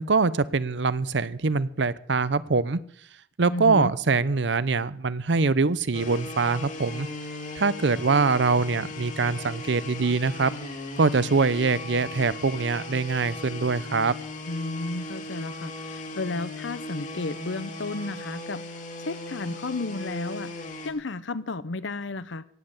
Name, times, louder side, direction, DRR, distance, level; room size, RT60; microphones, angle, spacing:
voice 1, 0.0-2.8 3.4-7.1 7.6-10.5 11.0-14.1, right 4 dB, 70° right, 17 dB, 0.7 m, -23 dB
voice 2, 3.5-3.9 14.5-18.6 19.0-20.5 20.8-22.4, left 3 dB, 85° left, 15 dB, 0.8 m, -32 dB
sound 1, 5.9-20.9, left 2 dB, 40° left, 2.3 m, -38 dB
17.5 x 7.6 x 8.2 m, 0.63 s
head